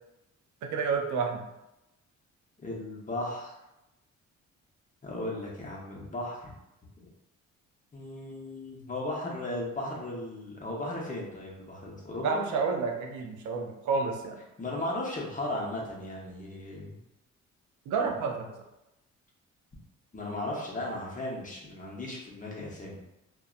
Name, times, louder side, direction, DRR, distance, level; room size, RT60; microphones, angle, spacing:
voice 1, 0.6-1.5 12.2-14.4 17.9-18.5, right 5 dB, 75° right, 2 dB, 0.5 m, -30 dB
voice 2, 2.6-3.6 5.0-6.6 7.9-12.4 14.6-17.0 20.1-23.0, left 1 dB, 25° left, -3 dB, 0.8 m, -36 dB
2.6 x 2.1 x 2.4 m, 0.91 s
cardioid pair, 90°, 30 cm